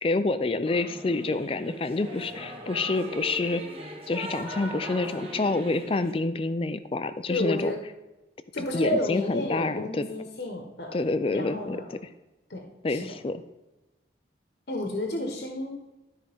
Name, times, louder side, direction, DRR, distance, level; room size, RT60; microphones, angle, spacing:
voice 1, 0.0-3.6 4.1-7.7 8.6-10.1 10.9-11.8 12.8-13.4, left 3 dB, 30° left, 12 dB, 0.4 m, -27 dB
Singing / Musical instrument, 0.6-6.1, equal, 30° right, 1.3 m, -39 dB
voice 2, 7.3-7.8 8.5-11.0 11.3-11.9 12.5-13.1 14.7-15.7, left 1 dB, 65° left, 2 dB, 1.1 m, -31 dB
12.5 x 4.8 x 3.5 m, 1.0 s
head